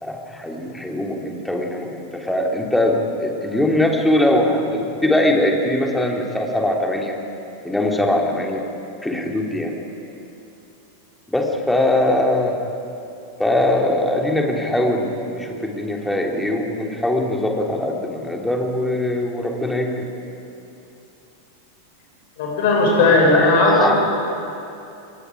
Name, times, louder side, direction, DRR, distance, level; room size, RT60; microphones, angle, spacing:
voice 1, 0.0-7.1 7.6-8.6 9.0-9.7 11.3-12.5 13.4-20.1 22.9-23.9, left 1 dB, 5° left, 0 dB, 3.2 m, -21 dB
voice 2, 22.4-24.0, left 2 dB, 50° left, -1 dB, 5.9 m, -16 dB
29.0 x 23.0 x 5.0 m, 2.7 s
figure-of-eight pair, 90°, 0 cm